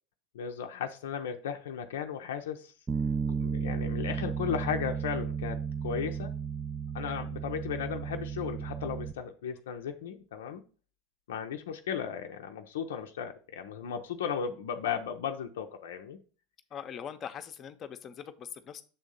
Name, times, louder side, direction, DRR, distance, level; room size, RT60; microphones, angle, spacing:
voice 1, 0.3-2.7 3.4-5.6 5.8-6.3 6.9-10.6 11.3-16.2, left 8 dB, 70° left, 5 dB, 0.6 m, -35 dB
Bass guitar, 2.9-9.1, right 6 dB, 20° right, 0.5 m, -34 dB
voice 2, 16.7-18.8, left 8 dB, 35° left, 9 dB, 0.8 m, -42 dB
6.9 x 3.6 x 5.4 m, 0.38 s
hypercardioid pair, 80°, 0 cm